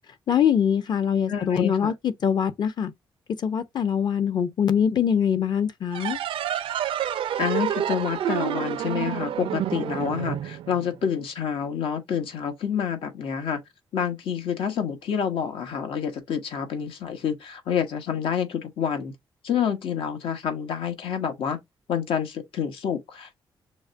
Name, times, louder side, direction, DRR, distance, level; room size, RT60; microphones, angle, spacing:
voice 1, 0.3-2.9 3.4-6.2, left 8 dB, 55° left, 0.8 m, -23 dB
voice 2, 1.3-1.9 7.4-13.6 13.9-19.1 19.4-21.6 21.9-23.4, left 8 dB, 85° left, 1.3 m, -28 dB
sound 1, 5.9-11.2, right 10 dB, 85° right, 0.5 m, -29 dB
6.2 x 2.2 x 2.5 m
cardioid pair, 125°, 9 cm